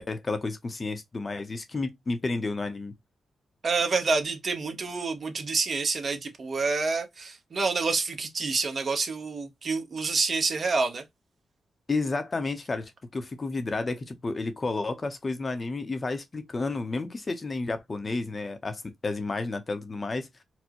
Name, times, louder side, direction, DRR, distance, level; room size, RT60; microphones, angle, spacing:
voice 1, 0.1-2.9 11.9-20.3, left 3 dB, 30° left, 0.6 m, -31 dB
voice 2, 3.6-11.0, right 4 dB, 45° right, 0.8 m, -28 dB
4.3 x 2.1 x 2.8 m
cardioid pair, 115°, 0 cm